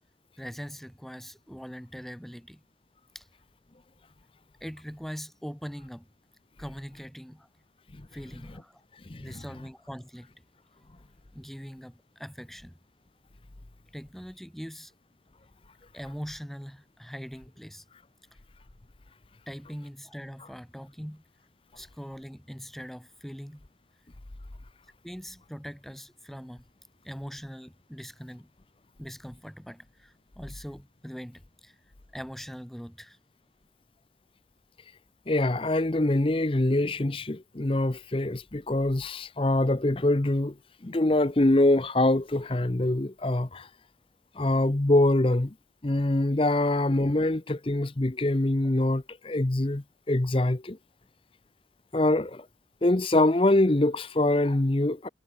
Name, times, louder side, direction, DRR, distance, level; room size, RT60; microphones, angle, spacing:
voice 1, 0.4-2.6 3.1-3.3 4.6-6.1 6.6-7.5 8.1-8.8 9.2-10.4 11.3-12.8 13.9-14.9 15.9-17.8 19.5-21.2 21.8-23.6 25.0-26.6 27.0-28.5 29.0-31.8 32.1-33.2, equal, ahead, 2.4 m, -42 dB
voice 2, 35.3-40.5 40.8-43.7 44.4-45.5 45.8-50.8 51.9-52.4 52.8-55.1, left 1 dB, 30° left, 0.7 m, -24 dB
head